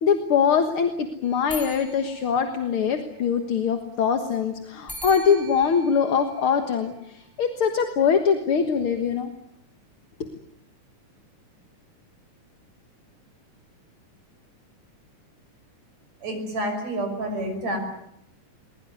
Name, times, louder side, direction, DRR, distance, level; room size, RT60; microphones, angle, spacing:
voice 1, 0.0-6.9 7.4-9.3 10.2-10.3, left 6 dB, 50° left, 6 dB, 2.0 m, -22 dB
sound 1, 1.2-3.2 4.9-7.3, right 1 dB, ahead, 5.5 m, -42 dB
voice 2, 16.2-17.8, right 1 dB, 60° right, 5 dB, 7.2 m, -28 dB
22.5 x 21.0 x 9.5 m, 0.77 s
omnidirectional pair, 3.5 m